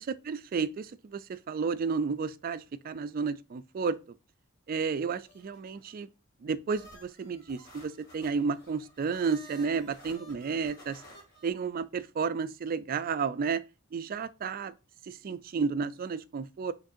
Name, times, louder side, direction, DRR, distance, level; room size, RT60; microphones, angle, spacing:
voice 1, 0.0-4.0 4.7-6.1 6.4-11.0 11.4-13.6 13.9-14.7 15.0-16.7, right 5 dB, 45° right, 0.3 m, -32 dB
sound 1, 4.9-5.9 6.7-11.5, right 1 dB, 50° left, 2.4 m, -53 dB
6.2 x 3.2 x 2.6 m
head